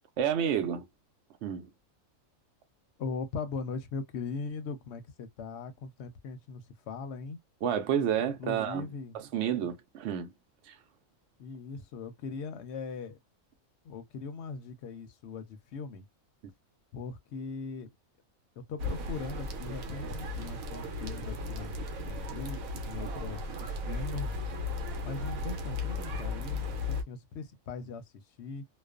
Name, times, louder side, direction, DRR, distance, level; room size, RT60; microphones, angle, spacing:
voice 1, 0.2-0.9 1.4-1.7 7.6-8.9 9.1-10.3 10.6-10.8, right 9 dB, 65° right, 0.8 m, -30 dB
voice 2, 3.0-7.4 8.2-9.2 11.4-13.2 13.8-16.0 16.9-17.9 18.6-21.8 22.0-24.3 25.0-28.7, left 4 dB, 65° left, 0.8 m, -40 dB
sound 1, 18.8-27.0, left 2 dB, 80° right, 1.1 m, -36 dB
2.4 x 2.2 x 2.3 m
omnidirectional pair, 1.4 m